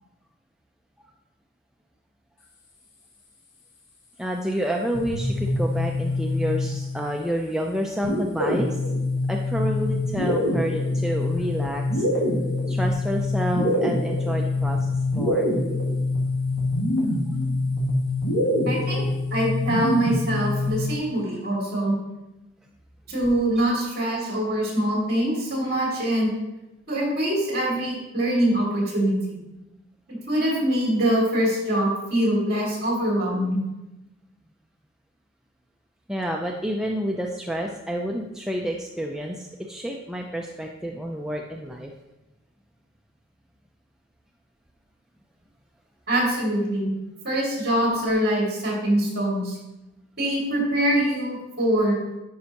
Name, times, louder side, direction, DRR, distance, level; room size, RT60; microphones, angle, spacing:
voice 1, 4.2-8.7 9.3-12.1 12.7-15.5 36.1-41.9, equal, 5° right, 0 dB, 0.4 m, -29 dB
sound 1, 4.9-7.1 8.0-21.0, left 2 dB, 80° left, 1.7 m, -25 dB
voice 2, 18.7-19.1 19.3-21.9 23.1-26.3 26.9-29.4 30.3-33.6 46.1-46.9 47.2-49.6 50.2-52.0, right 1 dB, 45° right, -3 dB, 2.3 m, -24 dB
10.0 x 5.2 x 2.9 m, 0.98 s
head